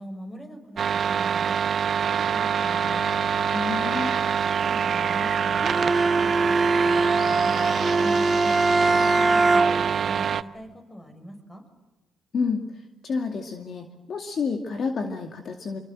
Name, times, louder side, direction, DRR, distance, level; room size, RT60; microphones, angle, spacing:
voice 1, 0.0-1.6 2.0-3.1 4.5-7.7 8.7-11.6, equal, 20° left, 6 dB, 6.6 m, -42 dB
sound 1, 0.8-10.4, right 7 dB, 55° right, 0.9 m, -25 dB
voice 2, 3.5-4.1 8.0-8.6 12.3-12.6 13.0-15.8, left 5 dB, 55° left, 4 dB, 2.3 m, -29 dB
Bowed string instrument, 5.6-10.0, right 3 dB, 20° right, 1.1 m, -22 dB
26.0 x 24.0 x 7.7 m, 1.1 s
cardioid pair, 90°, 0 cm